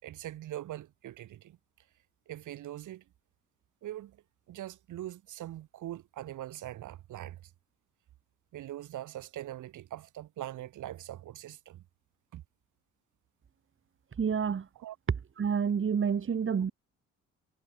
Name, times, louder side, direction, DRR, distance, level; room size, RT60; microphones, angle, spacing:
voice 1, 0.0-1.6 2.3-3.0 3.8-7.5 8.5-11.8 12.3-12.4 14.8-15.0, right 13 dB, 80° right, 6.2 m, -42 dB
voice 2, 14.2-14.7 15.4-16.7, right 7 dB, 45° right, 2.9 m, -28 dB
cardioid pair, 90°, 30 cm